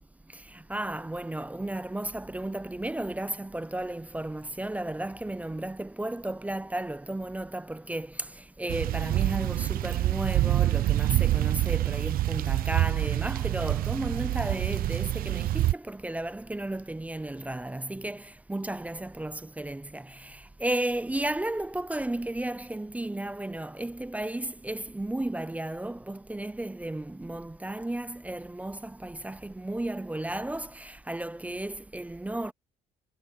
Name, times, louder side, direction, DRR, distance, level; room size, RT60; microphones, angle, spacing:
voice 1, 0.3-32.5, right 1 dB, 10° right, 0.6 m, -34 dB
sound 1, 8.7-15.7, right 14 dB, 60° right, 0.6 m, -26 dB
cardioid pair, 110°, 17 cm